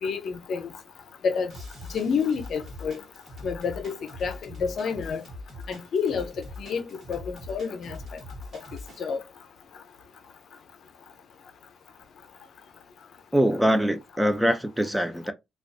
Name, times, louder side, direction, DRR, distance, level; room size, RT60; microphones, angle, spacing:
voice 1, 0.0-0.7 1.2-1.5 1.9-3.0 3.4-5.2 5.7-6.3 6.6-8.0 9.0-9.2, left 6 dB, 65° left, 0.5 m, -29 dB
sound 1, 1.5-9.0, left 1 dB, 55° right, 1.1 m, -42 dB
voice 2, 13.3-15.3, equal, 5° right, 0.4 m, -23 dB
2.4 x 2.3 x 2.4 m
cardioid pair, 105°, 0 cm